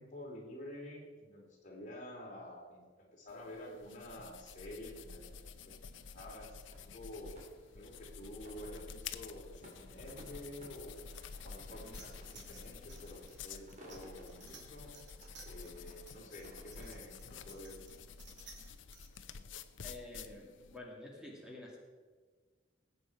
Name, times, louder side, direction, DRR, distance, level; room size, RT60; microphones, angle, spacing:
voice 1, 0.0-7.4 7.7-11.1 11.4-15.0 15.4-17.9, left 1 dB, 40° left, -1 dB, 3.2 m, -49 dB
sound 1, 3.3-20.8, left 6 dB, 80° left, 0.7 m, -50 dB
sound 2, 6.0-17.1, equal, 40° right, 3.2 m, -60 dB
sound 3, 11.9-19.2, right 4 dB, 65° right, 2.7 m, -57 dB
voice 2, 19.8-21.8, left 1 dB, 5° right, -3 dB, 2.3 m, -49 dB
20.5 x 8.7 x 4.7 m, 1.4 s
head